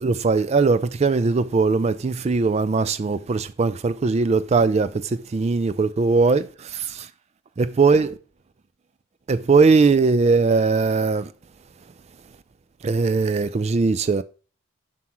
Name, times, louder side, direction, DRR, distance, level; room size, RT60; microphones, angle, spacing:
voice 1, 0.0-7.1 7.6-8.2 9.3-11.3 12.8-14.2, right 4 dB, 30° right, 0.3 m, -20 dB
7.4 x 6.0 x 3.0 m
head